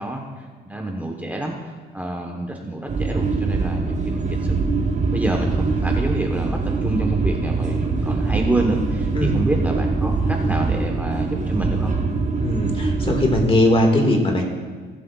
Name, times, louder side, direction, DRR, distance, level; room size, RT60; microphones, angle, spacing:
voice 1, 0.0-1.6 1.9-4.5 5.1-11.9, right 1 dB, 10° right, 1 dB, 1.1 m, -27 dB
sound 1, 2.9-13.4, right 3 dB, 40° right, 1.2 m, -23 dB
voice 2, 12.4-14.4, left 1 dB, 30° left, 2 dB, 1.8 m, -19 dB
18.5 x 7.6 x 2.4 m, 1.5 s
cardioid pair, 90°, 20 cm